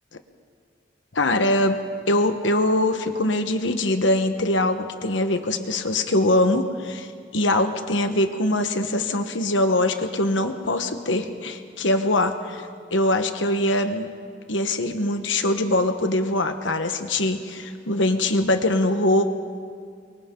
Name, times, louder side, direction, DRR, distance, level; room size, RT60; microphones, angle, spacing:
voice 1, 1.1-1.8 2.1-7.1 7.3-14.1 14.5-19.2, left 1 dB, 85° left, 7 dB, 1.4 m, -22 dB
29.5 x 23.5 x 3.9 m, 2.2 s
head